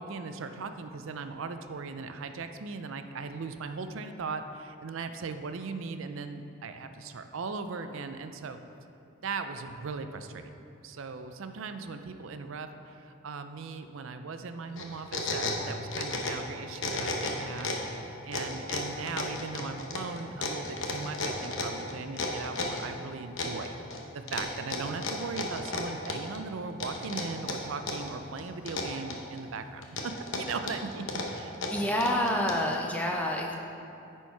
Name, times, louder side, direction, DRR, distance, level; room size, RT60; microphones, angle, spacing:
voice 1, 0.0-8.6 9.2-10.5 10.8-31.5, right 4 dB, 65° right, 8 dB, 0.4 m, -38 dB
sound 1, 14.8-16.5 16.7-17.9 18.3-22.9 23.4-24.0 24.3-26.4 26.8-28.1 28.4-29.4 29.8-32.7, left 3 dB, 60° left, 0.9 m, -33 dB
voice 2, 31.7-33.5, left 1 dB, 5° left, 0 dB, 0.7 m, -28 dB
9.8 x 4.5 x 4.6 m, 2.8 s
head